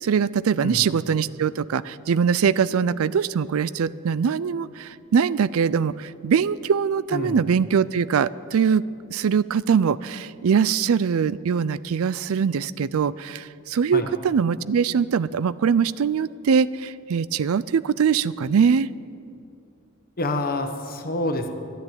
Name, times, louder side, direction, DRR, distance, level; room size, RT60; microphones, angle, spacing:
voice 1, 0.0-8.8 9.1-18.9, right 6 dB, 75° right, 18 dB, 0.4 m, -22 dB
voice 2, 20.2-21.5, left 2 dB, 45° left, 6 dB, 1.2 m, -27 dB
13.0 x 10.5 x 9.0 m, 2.6 s
head